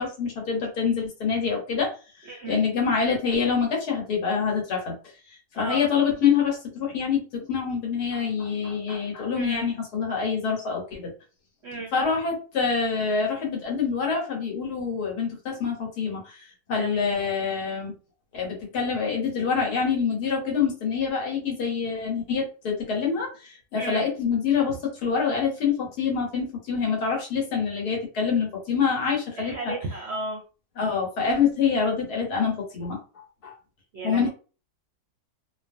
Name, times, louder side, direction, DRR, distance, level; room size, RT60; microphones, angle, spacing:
voice 1, 0.0-5.0 5.6-11.1 11.9-17.9 18.3-29.7 30.8-33.0 33.4-33.5 34.0-34.3, left 6 dB, 70° left, 0 dB, 1.5 m, -26 dB
voice 2, 2.3-2.6 5.5-5.9 9.3-9.7 11.6-11.9 16.7-17.0 23.7-24.1 29.4-30.4 33.9-34.3, right 2 dB, 60° right, -1 dB, 0.7 m, -34 dB
2.9 x 2.4 x 2.5 m, 0.35 s
omnidirectional pair, 1.7 m